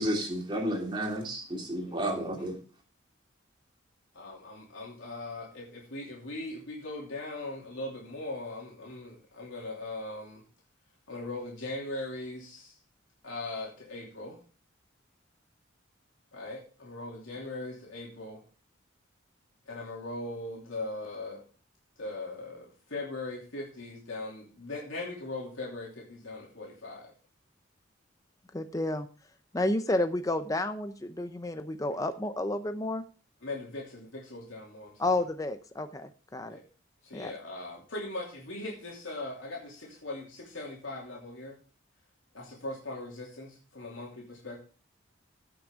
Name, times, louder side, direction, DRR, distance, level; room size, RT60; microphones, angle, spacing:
voice 1, 0.0-2.5, right 1 dB, 25° right, 0 dB, 2.8 m, -31 dB
voice 2, 1.9-2.5 4.1-10.4 11.1-12.7 13.2-14.4 16.3-18.4 19.7-21.4 22.0-27.1 33.4-35.1 36.5-36.6 37.0-41.5 42.3-44.6, left 2 dB, 75° left, -3 dB, 3.0 m, -40 dB
voice 3, 28.5-29.1 29.5-33.0 35.0-36.6 37.1-37.3, left 2 dB, 15° left, 8 dB, 0.6 m, -31 dB
16.5 x 6.2 x 3.6 m, 0.37 s
head